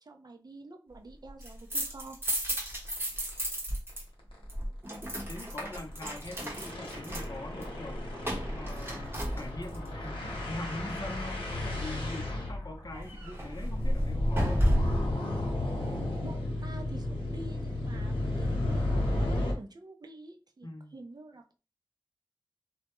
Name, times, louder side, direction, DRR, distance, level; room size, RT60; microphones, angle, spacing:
voice 1, 0.0-2.2 7.6-7.7 15.7-21.6, right 2 dB, 50° right, 0.4 m, -48 dB
sound 1, 1.3-4.0 4.3-9.9 12.9-15.1, equal, 25° right, 0.8 m, -32 dB
sound 2, 2.9-3.0 3.3-3.4 3.7-3.9 4.2-4.4 5.7-19.5, left 1 dB, 90° left, 0.8 m, -33 dB
voice 2, 5.3-14.7 20.6-20.9, left 1 dB, 50° left, 0.6 m, -43 dB
2.2 x 2.1 x 2.9 m
wide cardioid pair, 60°, 9 cm